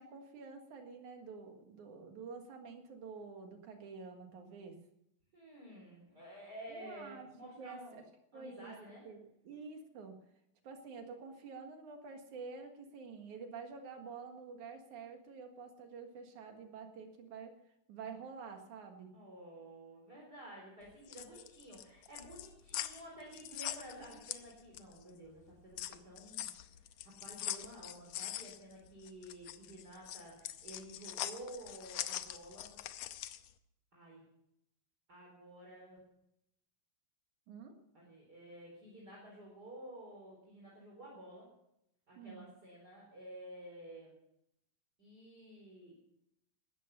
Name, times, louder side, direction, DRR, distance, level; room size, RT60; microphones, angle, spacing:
voice 1, 0.0-4.8 6.7-7.3 7.6-7.8 8.3-8.7 9.0-10.2 10.6-17.5 17.9-19.1 37.5-37.8 42.2-42.5, right 5 dB, 60° right, 5 dB, 3.0 m, -48 dB
voice 2, 5.3-8.0 8.3-9.1 19.1-32.8 33.9-34.2 35.1-36.0 37.9-41.5 42.1-44.1 45.0-46.0, right 1 dB, 25° right, -3 dB, 4.6 m, -52 dB
sound 1, 20.9-25.0 25.4-33.5, left 12 dB, 90° left, 1.5 m, -43 dB
17.5 x 14.0 x 5.7 m, 0.78 s
omnidirectional pair, 4.1 m